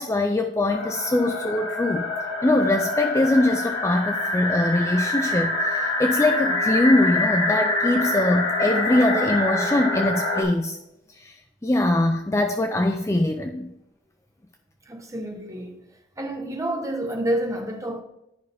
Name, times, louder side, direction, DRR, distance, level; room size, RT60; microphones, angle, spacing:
voice 1, 0.0-2.0 2.4-10.8 11.2-11.3 11.6-13.7, left 1 dB, 15° left, 0.3 m, -22 dB
sound 1, 0.7-10.4, left 2 dB, 80° left, 2.7 m, -26 dB
voice 2, 14.9-15.8 16.2-18.0, right 1 dB, 15° right, 0.8 m, -29 dB
10.5 x 5.3 x 3.4 m
head